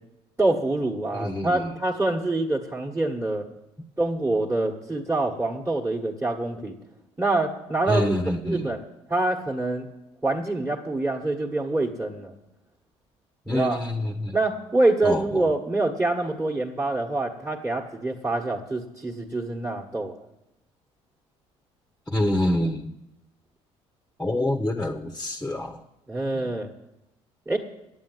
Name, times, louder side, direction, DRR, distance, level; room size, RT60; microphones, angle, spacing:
voice 1, 0.4-3.5 4.0-6.8 7.2-8.2 8.4-8.8 9.1-9.9 10.2-12.3 13.5-13.8 14.3-20.2 26.1-26.7 27.5-27.6, right 2 dB, 15° right, -4 dB, 1.6 m, -25 dB
voice 2, 1.1-1.7 7.9-8.7 13.5-14.4 15.0-15.5 22.1-22.9 24.2-25.8 26.3-26.5, left 1 dB, 10° left, 4 dB, 1.1 m, -26 dB
9.1 x 8.5 x 8.0 m, 0.92 s
hypercardioid pair, 65°, 14 cm